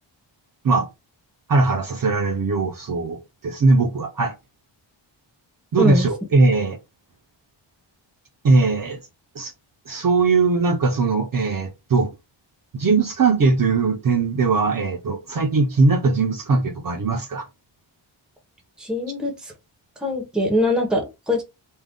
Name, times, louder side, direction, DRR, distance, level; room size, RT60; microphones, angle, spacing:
voice 1, 1.5-4.3 5.7-6.8 8.4-9.0 9.4-9.5 9.9-12.1 12.7-17.5, right 3 dB, 45° right, 0.5 m, -20 dB
voice 2, 5.8-6.1 18.8-19.5 20.0-21.4, left 1 dB, ahead, 0.6 m, -22 dB
2.5 x 2.1 x 3.5 m
wide cardioid pair, 180°, 48 cm